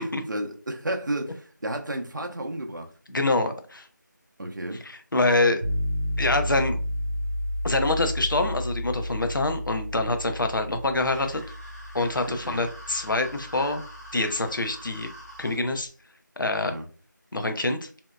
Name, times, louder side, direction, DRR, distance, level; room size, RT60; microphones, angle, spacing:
voice 1, 0.0-2.9 4.4-4.8 12.3-12.6 16.6-16.9, right 1 dB, 70° right, 0.5 m, -32 dB
voice 2, 3.1-3.9 4.8-5.6 6.2-6.8 7.6-11.4 11.9-13.8 14.1-15.1 15.4-15.9 16.4-16.7 17.3-17.9, left 2 dB, 90° left, 0.5 m, -25 dB
sound 1, 5.6-15.5, left 1 dB, 30° left, 0.6 m, -32 dB
sound 2, 11.0-15.6, equal, 50° left, 1.1 m, -45 dB
2.7 x 2.2 x 2.2 m
figure-of-eight pair, 180°, 11 cm